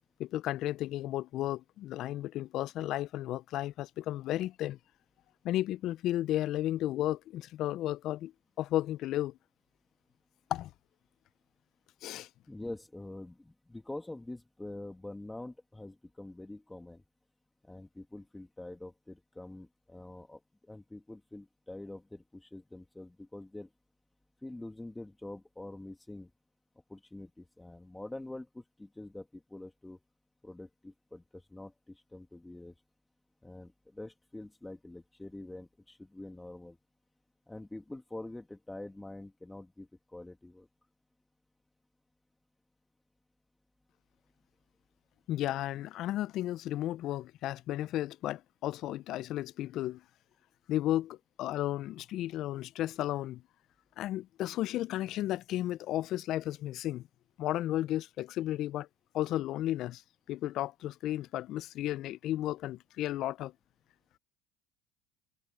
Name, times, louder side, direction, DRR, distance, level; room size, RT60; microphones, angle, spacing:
voice 1, 0.2-4.8 5.4-8.3 8.6-9.3 10.5-10.7 12.0-12.3 45.3-50.0 50.7-53.4 54.0-57.1 57.4-58.9 59.1-60.0 60.3-63.5, left 14 dB, 60° left, 0.9 m, -33 dB
voice 2, 12.5-17.0 17.6-23.7 24.4-26.3 26.9-30.0 30.4-32.7 33.4-36.8 37.5-40.7, left 2 dB, 10° left, 2.6 m, -45 dB
hypercardioid pair, 75°, 0 cm